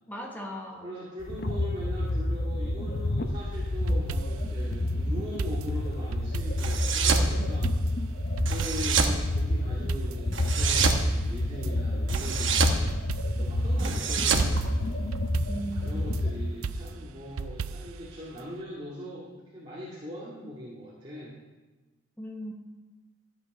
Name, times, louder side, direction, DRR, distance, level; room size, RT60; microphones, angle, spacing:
voice 1, 0.1-1.0 15.5-16.0 22.2-22.5, equal, 10° left, 1 dB, 1.2 m, -37 dB
voice 2, 0.8-7.8 8.4-12.8 13.4-15.1 15.8-21.3, equal, 25° right, -8 dB, 2.1 m, -40 dB
sound 1, 1.2-16.9, left 1 dB, 50° left, 0.7 m, -29 dB
sound 2, 3.5-4.6 5.4-7.2 7.6-9.1 9.4-9.5 9.9-11.7 12.1-13.6 13.9-14.0 14.4-16.2 16.6-18.1 18.4-18.5, right 5 dB, 90° right, 0.4 m, -37 dB
sound 3, 6.6-7.3 8.5-9.2 10.3-11.0 12.1-12.8 13.8-15.3, right 5 dB, 65° right, 1.1 m, -27 dB
13.0 x 8.5 x 5.3 m, 1.2 s
head